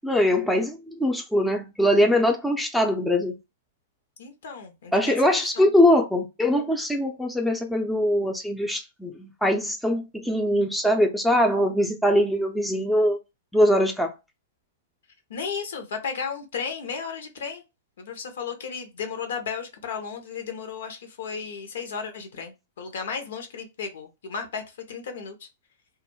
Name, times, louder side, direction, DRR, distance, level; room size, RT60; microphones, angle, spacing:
voice 1, 0.0-3.4 4.9-13.2 13.5-14.1, left 1 dB, ahead, 0.5 m, -22 dB
voice 2, 4.2-5.7 15.3-17.6 18.0-25.5, left 6 dB, 70° left, 0.8 m, -34 dB
2.3 x 2.0 x 3.1 m
hypercardioid pair, 120°, 0 cm